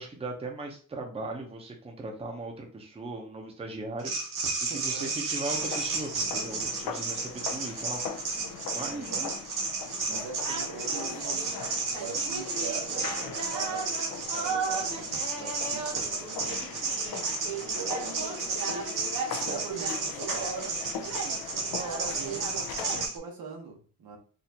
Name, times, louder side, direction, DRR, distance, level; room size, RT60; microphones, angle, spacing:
voice 1, 0.0-4.1 4.6-8.0 8.7-9.3, right 2 dB, 15° right, 1 dB, 0.6 m, -38 dB
sound 1, 4.0-23.2, right 4 dB, 65° right, 1.0 m, -32 dB
voice 2, 4.7-5.1 8.9-9.3 10.1-11.5 11.9-16.2 17.7-20.8 21.4-22.7 23.1-24.2, right 4 dB, 90° right, 2 dB, 1.1 m, -41 dB
sound 2, 5.5-23.1, left 6 dB, 75° left, 0.5 m, -41 dB
4.2 x 2.4 x 2.7 m, 0.41 s
wide cardioid pair, 180°, 35 cm